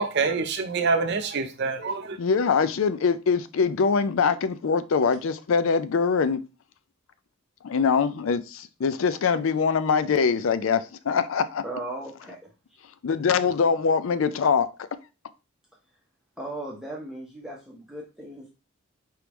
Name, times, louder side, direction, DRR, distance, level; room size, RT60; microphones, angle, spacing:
voice 1, 0.0-2.2, right 4 dB, 55° right, 0.7 m, -26 dB
voice 2, 2.2-6.4 7.6-11.6 13.0-14.7, left 5 dB, 75° left, 0.4 m, -23 dB
voice 3, 11.6-12.5 16.4-18.5, right 2 dB, ahead, 0.8 m, -37 dB
4.7 x 3.4 x 3.0 m
head